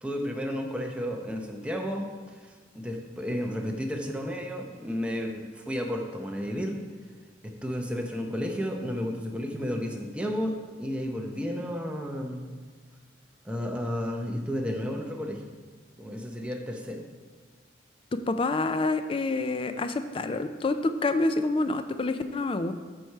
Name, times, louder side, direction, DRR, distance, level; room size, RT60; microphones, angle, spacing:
voice 1, 0.0-2.1 2.7-6.8 7.4-12.5 13.4-15.4 16.0-17.0, equal, 5° right, 2 dB, 0.7 m, -32 dB
voice 2, 18.3-22.7, left 2 dB, 30° left, 9 dB, 0.3 m, -27 dB
7.7 x 4.6 x 5.5 m, 1.5 s
head